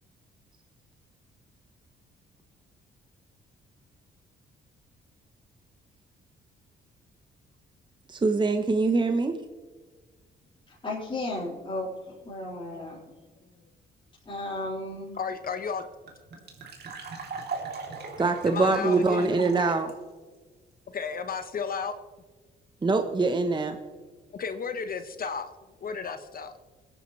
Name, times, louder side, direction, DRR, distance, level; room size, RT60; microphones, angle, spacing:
voice 1, 8.1-9.4 18.2-19.9 22.8-23.8, right 3 dB, 25° right, 7 dB, 0.9 m, -24 dB
voice 2, 10.7-13.0 14.2-15.2 18.8-19.2, left 2 dB, 25° left, -8 dB, 4.7 m, -35 dB
sound 1, 15.1-15.2 15.4-15.5 15.8-19.9, right 4 dB, 55° right, 3.0 m, -38 dB
voice 3, 15.2-15.8 18.4-19.3 20.9-22.0 24.3-25.5 25.8-26.6, left 6 dB, 45° left, 10 dB, 0.9 m, -33 dB
21.5 x 10.0 x 3.2 m, 1.3 s
cardioid pair, 90°, 20 cm